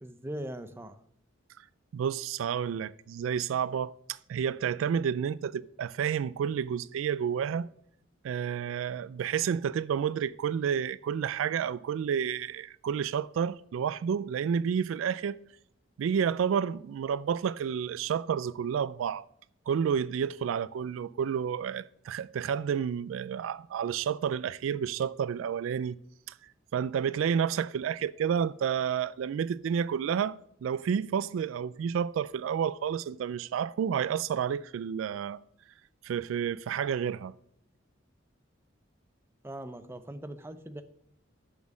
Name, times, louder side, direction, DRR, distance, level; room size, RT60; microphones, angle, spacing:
voice 1, 0.0-1.0 39.4-40.8, right 1 dB, 10° right, 0.5 m, -40 dB
voice 2, 1.9-7.7 8.2-15.4 16.0-19.2 19.7-26.0 26.7-30.4 30.6-35.4 36.0-37.3, right 7 dB, 80° right, 0.3 m, -30 dB
7.0 x 6.2 x 6.3 m
head